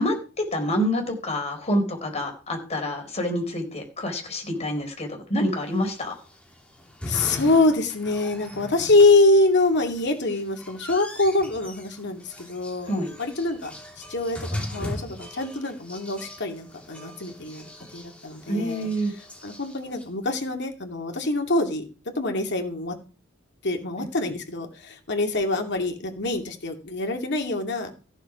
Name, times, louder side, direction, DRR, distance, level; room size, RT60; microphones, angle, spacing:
voice 1, 0.0-6.1 12.9-13.1 18.5-19.1, equal, 35° left, 3 dB, 4.2 m, -27 dB
sound 1, 5.7-20.0, left 1 dB, 5° left, 3.0 m, -40 dB
voice 2, 7.0-12.9 13.2-18.9 19.4-21.8 22.1-22.9 23.6-27.9, left 2 dB, 60° left, 4 dB, 2.6 m, -24 dB
15.0 x 7.3 x 6.0 m, 0.36 s
head